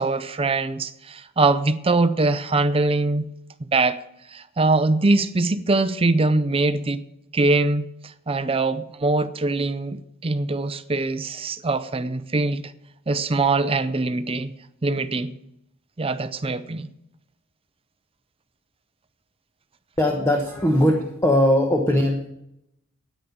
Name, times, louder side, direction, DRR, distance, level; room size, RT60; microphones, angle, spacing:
voice 1, 0.0-3.2 3.7-4.0 4.3-7.0 7.3-12.6 13.1-14.5 14.8-15.3 16.0-16.9, right 3 dB, 25° right, 0.6 m, -22 dB
voice 2, 20.0-22.3, left 1 dB, 10° left, 1.1 m, -20 dB
9.7 x 9.3 x 7.0 m
head